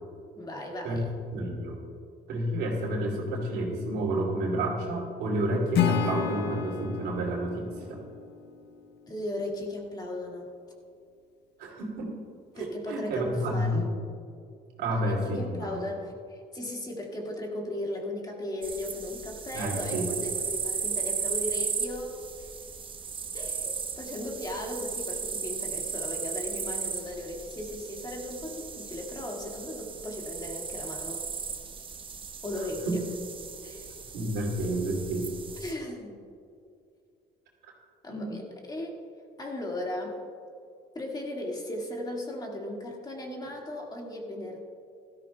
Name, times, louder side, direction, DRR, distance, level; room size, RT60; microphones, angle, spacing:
voice 1, 0.4-1.1 9.1-10.5 12.6-13.9 14.9-22.5 23.3-31.2 32.4-33.0 33.6-33.9 35.6-36.2 38.0-39.0 39.4-40.2 41.0-44.6, left 1 dB, 25° left, 0 dB, 1.8 m, -37 dB
voice 2, 1.3-1.8 2.3-8.0 11.6-12.1 12.5-13.8 14.8-15.8 19.5-20.0 32.6-33.0 34.1-35.3 38.1-38.4, right 1 dB, 75° right, -1 dB, 2.6 m, -30 dB
Acoustic guitar / Strum, 5.7-8.9, left 8 dB, 80° left, 0.7 m, -31 dB
sound 1, 18.6-35.7, right 5 dB, 30° right, 0.8 m, -36 dB
16.0 x 13.0 x 2.2 m, 2.4 s
cardioid pair, 110°, 17 cm